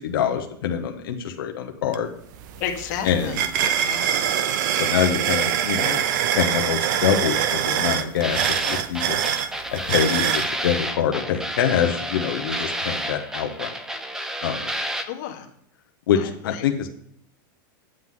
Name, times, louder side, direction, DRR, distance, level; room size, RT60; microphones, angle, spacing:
voice 1, 0.0-2.1 3.0-3.4 4.8-6.0 6.3-9.2 9.7-13.7 14.4-14.6 16.1-16.9, left 8 dB, 90° left, 3 dB, 1.0 m, -25 dB
sound 1, 1.9-2.0 2.3-10.5, right 9 dB, 60° right, 0.7 m, -24 dB
voice 2, 2.6-3.4 3.8-4.3 15.1-15.5 16.2-16.6, left 9 dB, 55° left, 3 dB, 1.4 m, -32 dB
sound 2, 8.2-15.0, right 1 dB, 5° right, 0.5 m, -30 dB
9.1 x 7.8 x 3.8 m, 0.68 s
supercardioid pair, 160°, 11 cm